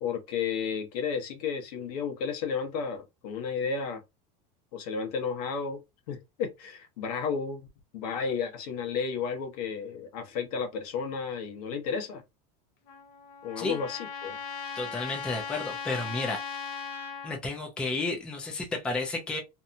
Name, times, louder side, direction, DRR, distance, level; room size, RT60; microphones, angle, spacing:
voice 1, 0.0-4.0 4.7-5.8 6.1-7.7 7.9-12.2 13.4-14.4, left 6 dB, 80° left, 1.0 m, -32 dB
Trumpet, 12.9-17.4, left 6 dB, 55° left, 0.6 m, -38 dB
voice 2, 14.8-16.4 17.2-19.4, left 3 dB, 5° left, 0.4 m, -32 dB
2.8 x 2.2 x 2.5 m
supercardioid pair, 175°, 20 cm